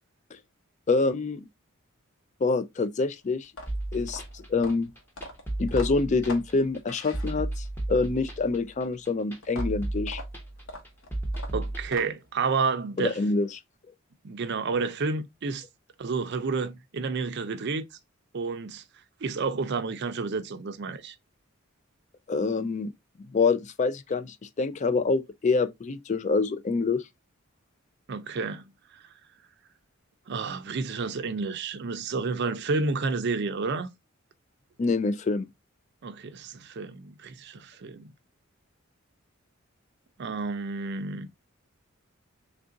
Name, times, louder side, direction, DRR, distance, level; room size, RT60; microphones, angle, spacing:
voice 1, 0.9-1.5 2.4-3.5 3.9-4.9 5.6-10.2 13.0-13.6 22.3-22.9 23.3-27.0 34.8-35.5, left 4 dB, 35° left, 0.3 m, -26 dB
sound 1, 3.4-7.8 9.4-12.4, left 1 dB, 65° left, 1.0 m, -42 dB
sound 2, 3.7-11.9, right 1 dB, 10° left, 0.8 m, -34 dB
voice 2, 11.5-13.1 14.2-15.6 16.0-17.8 18.3-18.8 19.2-21.1 28.1-28.6 30.3-33.9 36.0-38.1 40.2-41.3, right 4 dB, 55° right, 0.5 m, -30 dB
3.5 x 2.5 x 3.7 m
head